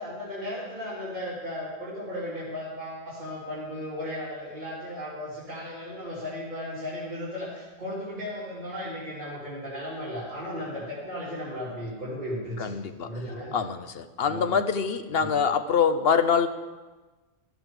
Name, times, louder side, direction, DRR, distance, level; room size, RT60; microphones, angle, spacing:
voice 1, 0.0-12.7 13.0-13.6 14.2-14.6 15.2-15.3, left 1 dB, 40° right, -9 dB, 3.3 m, -35 dB
voice 2, 12.6-13.1 13.5-16.5, left 6 dB, 60° left, 10 dB, 1.0 m, -24 dB
14.0 x 12.5 x 5.0 m, 1.2 s
omnidirectional pair, 1.2 m